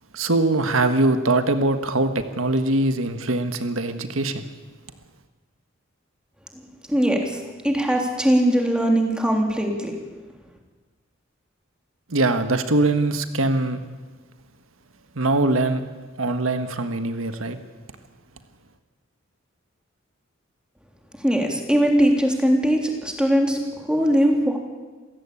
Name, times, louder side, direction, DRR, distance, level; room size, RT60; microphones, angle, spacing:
voice 1, 0.1-4.4 12.1-13.8 15.1-15.8 16.2-17.6, right 2 dB, 90° right, 9 dB, 1.6 m, -22 dB
voice 2, 6.9-10.0 21.2-24.6, equal, 5° right, 2 dB, 3.4 m, -21 dB
27.5 x 15.5 x 8.7 m, 1.3 s
head